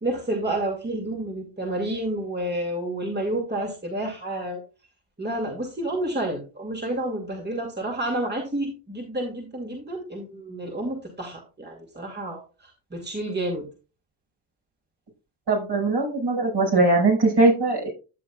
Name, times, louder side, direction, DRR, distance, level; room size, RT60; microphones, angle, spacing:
voice 1, 0.0-4.6 5.2-13.7, right 1 dB, 20° right, 1 dB, 2.5 m, -30 dB
voice 2, 15.5-17.9, right 2 dB, 55° right, -1 dB, 5.5 m, -20 dB
12.5 x 7.5 x 2.4 m, 0.33 s
supercardioid pair, 50°, 49 cm